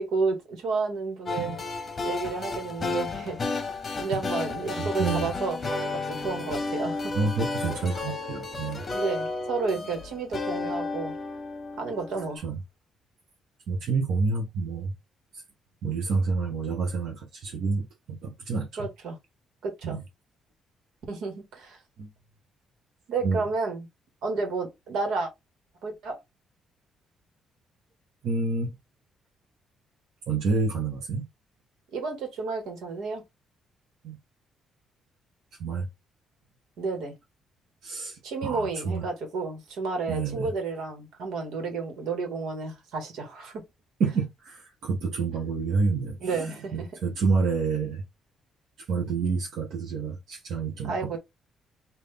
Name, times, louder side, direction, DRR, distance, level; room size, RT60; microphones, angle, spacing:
voice 1, 0.0-1.6 2.0-3.4 4.0-7.1 8.9-11.1 11.8-12.4 18.8-19.2 19.6-20.0 21.1-21.8 23.1-23.9 24.2-25.3 25.8-26.2 31.9-33.2 36.8-37.1 38.2-43.6 46.2-46.9 50.8-51.2, right 4 dB, 75° right, 1.7 m, -31 dB
sound 1, 1.3-12.4, left 3 dB, 25° left, 0.9 m, -32 dB
voice 2, 4.8-5.3 7.1-8.8 12.4-12.6 13.7-14.9 15.8-18.7 19.8-20.0 22.0-22.1 23.2-23.4 28.2-28.7 30.3-31.3 34.0-34.2 35.6-35.9 37.8-39.1 40.1-40.5 44.0-48.0 48.9-51.2, right 4 dB, 60° right, 1.1 m, -28 dB
3.9 x 2.7 x 3.4 m
cardioid pair, 160°, 0 cm